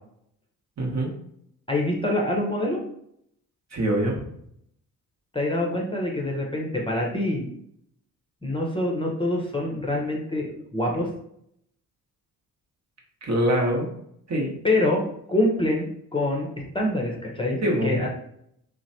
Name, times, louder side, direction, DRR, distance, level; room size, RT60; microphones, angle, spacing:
voice 1, 0.8-1.1 3.7-4.2 13.2-13.9 14.3-14.5 17.6-18.0, right 1 dB, 40° right, -1 dB, 1.0 m, -24 dB
voice 2, 1.7-2.8 5.3-7.5 8.4-11.1 14.6-15.0 15.3-16.5 16.7-18.1, left 1 dB, 10° left, -2 dB, 0.8 m, -25 dB
3.0 x 2.2 x 2.7 m, 0.71 s
hypercardioid pair, 45°, 42 cm